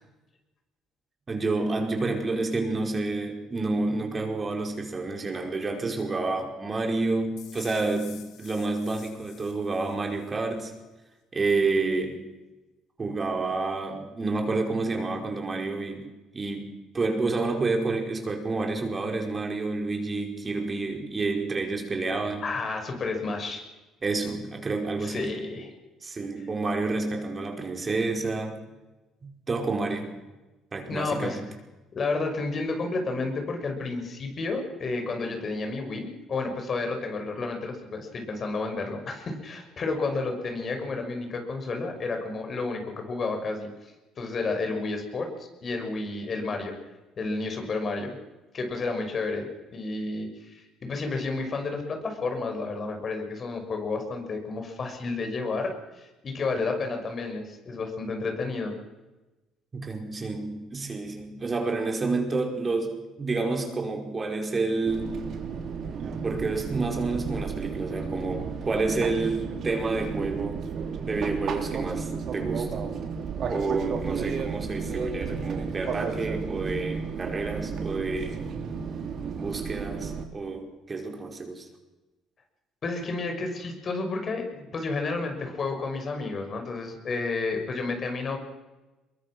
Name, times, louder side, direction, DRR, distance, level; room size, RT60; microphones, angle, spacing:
voice 1, 1.3-10.7 11.3-12.3 13.0-22.4 24.0-25.4 26.0-28.6 29.2-30.2 30.7-31.4 59.7-65.1 66.2-70.6 71.0-72.8 73.5-78.4 79.4-81.7, right 3 dB, 30° right, 3 dB, 4.9 m, -29 dB
sound 1, 7.4-10.4, left 10 dB, 70° left, 3.3 m, -50 dB
voice 2, 22.4-23.6 25.0-25.7 30.9-31.4 31.9-46.7 47.2-48.2 48.5-58.7 82.8-88.4, left 3 dB, 45° left, 5 dB, 5.8 m, -31 dB
Fixed-wing aircraft airplane, 64.9-80.2, right 6 dB, 60° right, 3.7 m, -33 dB
23.0 x 22.0 x 6.1 m, 1.1 s
supercardioid pair, 70°, 0 cm